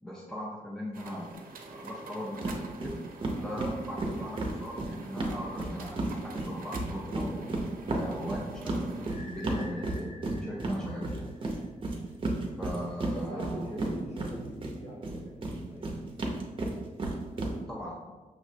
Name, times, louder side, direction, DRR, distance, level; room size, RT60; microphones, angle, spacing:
voice 1, 0.0-1.3 1.7-3.0 3.4-7.4 7.9-10.1 10.4-11.3 12.6-13.6 17.7-18.1, equal, 5° left, -4 dB, 0.5 m, -39 dB
sound 1, 0.9-9.1, right 3 dB, 85° right, 0.6 m, -47 dB
sound 2, 2.4-2.6 2.8-2.9 3.2-6.1 6.4-14.7 15.0-17.5, right 2 dB, 35° right, 0.6 m, -32 dB
sound 3, 9.1-11.9, left 2 dB, 70° left, 0.6 m, -50 dB
voice 2, 13.1-16.0, equal, 50° left, -4 dB, 1.2 m, -42 dB
6.1 x 3.1 x 2.7 m, 1.3 s
wide cardioid pair, 165°, 14 cm